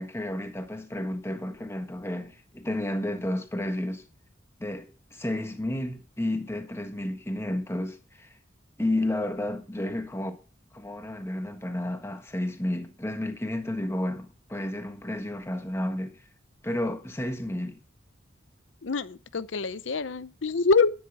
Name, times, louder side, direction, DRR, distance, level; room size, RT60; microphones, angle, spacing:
voice 1, 0.0-4.0 4.6-8.3 8.8-10.4 10.7-16.2 16.6-17.8, left 1 dB, 15° left, 1.4 m, -31 dB
voice 2, 18.8-20.9, left 4 dB, 75° left, 0.7 m, -25 dB
10.5 x 10.5 x 4.8 m
head